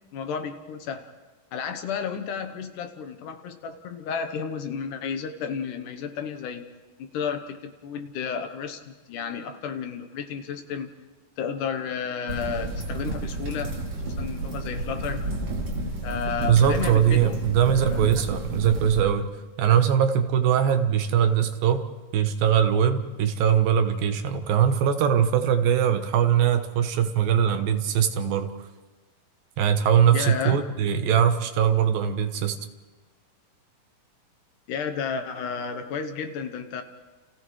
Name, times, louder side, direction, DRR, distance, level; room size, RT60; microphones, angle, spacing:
voice 1, 0.1-1.1 1.5-6.7 7.0-11.0 11.4-13.7 14.0-15.2 16.0-17.3 17.7-18.1 30.1-30.6 34.7-36.8, left 6 dB, 70° left, 8 dB, 2.4 m, -32 dB
sound 1, 12.3-19.0, right 2 dB, 40° right, 3.6 m, -31 dB
voice 2, 16.5-19.3 19.6-21.9 22.1-28.5 29.6-32.6, right 8 dB, 80° right, 8 dB, 2.9 m, -21 dB
30.0 x 29.5 x 3.2 m, 1.2 s
omnidirectional pair, 4.1 m